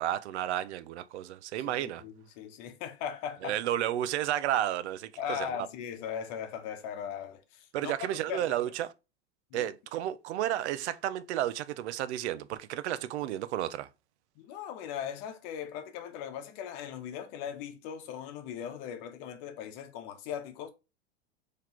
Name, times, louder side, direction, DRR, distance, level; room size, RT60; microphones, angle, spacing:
voice 1, 0.0-2.0 3.4-5.5 7.7-8.9 9.5-13.9, right 12 dB, 80° right, 0.5 m, -32 dB
voice 2, 1.6-3.7 5.2-8.5 9.5-9.7 14.4-20.7, left 8 dB, 55° left, 0.9 m, -39 dB
3.9 x 3.2 x 2.9 m
hypercardioid pair, 110°, 34 cm